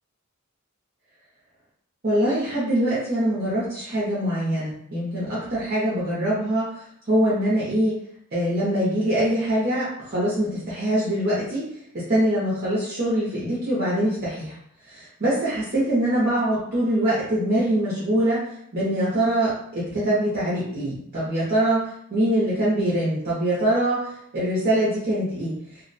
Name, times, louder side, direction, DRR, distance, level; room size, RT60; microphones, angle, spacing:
voice 1, 2.0-6.7 7.1-8.0 8.3-11.7 11.9-14.5 14.9-18.4 18.7-25.5, right 1 dB, 45° right, -9 dB, 0.7 m, -23 dB
2.5 x 2.1 x 2.6 m, 0.70 s
head